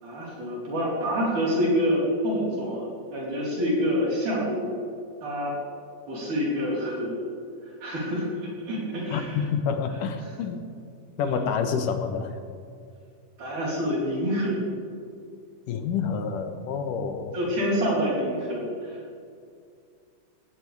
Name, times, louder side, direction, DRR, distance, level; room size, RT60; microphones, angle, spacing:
voice 1, 0.0-4.7 5.2-5.6 6.1-7.2 7.8-8.3 8.7-9.4 11.2-11.5 13.4-14.6 17.3-19.0, equal, 65° right, -6 dB, 5.9 m, -27 dB
voice 2, 9.1-10.6 11.2-12.4 15.7-17.4, left 6 dB, 85° left, 7 dB, 2.7 m, -28 dB
18.5 x 18.0 x 3.5 m, 2.3 s
omnidirectional pair, 3.7 m